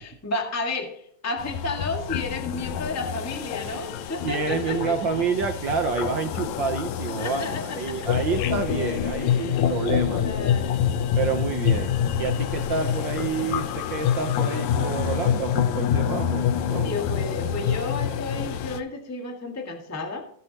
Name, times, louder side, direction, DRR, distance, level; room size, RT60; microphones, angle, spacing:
voice 1, 0.0-5.0 7.2-8.1 9.2-9.7 10.1-10.8 16.8-20.3, left 2 dB, 10° left, 3 dB, 1.1 m, -32 dB
sound 1, 1.4-18.8, left 9 dB, 80° left, 2.1 m, -26 dB
voice 2, 4.2-10.2 11.1-16.9, right 5 dB, 75° right, 6 dB, 1.0 m, -28 dB
19.0 x 7.7 x 2.9 m, 0.64 s
omnidirectional pair, 3.3 m